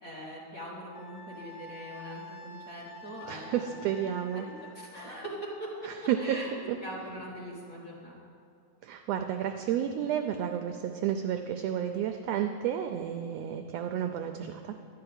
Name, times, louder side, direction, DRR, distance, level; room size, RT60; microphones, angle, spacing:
voice 1, 0.0-3.8 4.0-5.9 6.2-6.5 6.8-8.2, right 1 dB, 35° left, -6 dB, 1.6 m, -42 dB
Wind instrument woodwind instrument, 0.9-5.3, left 2 dB, 85° left, 2.8 m, -48 dB
voice 2, 3.3-4.5 5.8-6.4 6.7-6.8 8.8-14.7, right 9 dB, 80° right, 6 dB, 1.4 m, -31 dB
11.5 x 5.7 x 8.8 m, 2.4 s
omnidirectional pair, 3.3 m